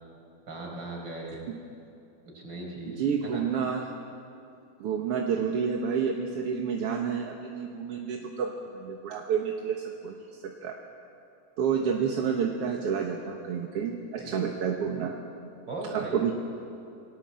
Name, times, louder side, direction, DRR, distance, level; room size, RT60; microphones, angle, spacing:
voice 1, 0.5-1.5 2.3-3.4 14.1-14.5 15.7-16.3, right 2 dB, 35° right, 0 dB, 5.2 m, -38 dB
voice 2, 2.9-3.8 4.8-10.8 11.6-15.2 15.9-16.3, right 7 dB, 60° right, 1 dB, 2.0 m, -29 dB
28.0 x 19.0 x 7.6 m, 2.7 s
omnidirectional pair, 3.5 m